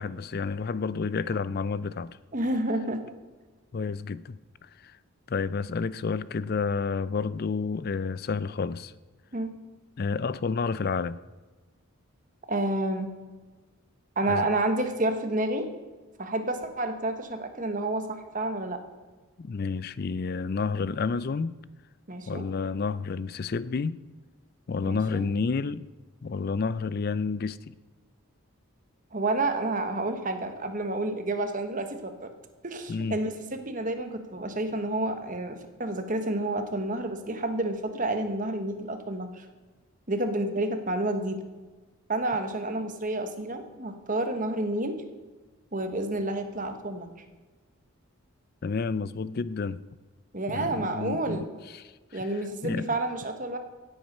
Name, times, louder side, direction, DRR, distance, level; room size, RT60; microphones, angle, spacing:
voice 1, 0.0-2.2 3.7-5.0 5.3-8.9 10.0-11.2 14.3-14.5 19.4-21.5 22.3-24.0 24.7-25.9 26.2-27.7 32.9-33.2 48.6-49.8 50.5-51.5 51.7-51.8 52.6-52.9, left 4 dB, 45° left, 0.4 m, -30 dB
voice 2, 2.3-3.0 9.3-9.5 12.5-13.1 14.2-15.7 16.2-18.8 22.1-22.4 24.8-25.3 29.1-32.3 32.6-39.5 40.1-41.4 42.1-45.0 45.7-47.1 50.3-51.5 52.1-53.6, right 2 dB, 35° right, 1.2 m, -29 dB
16.5 x 8.1 x 5.5 m
head